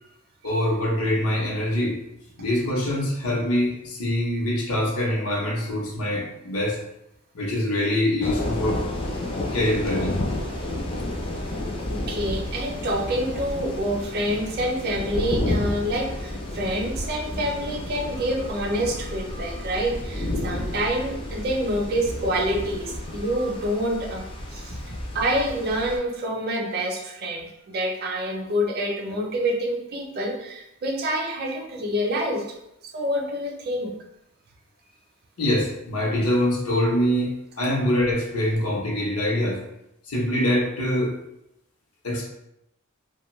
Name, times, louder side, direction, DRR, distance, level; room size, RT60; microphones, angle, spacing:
voice 1, 0.4-2.0 2.4-6.8 7.3-8.8 9.5-10.2 35.4-37.3 37.6-39.6 40.0-41.1 42.0-42.3, left 1 dB, 85° left, -3 dB, 0.8 m, -24 dB
sound 1, 8.2-26.0, left 1 dB, 25° left, 0.4 m, -31 dB
voice 2, 11.8-24.8 25.1-32.4 32.9-33.9, equal, 45° right, 0 dB, 0.5 m, -27 dB
2.5 x 2.3 x 3.0 m, 0.84 s
head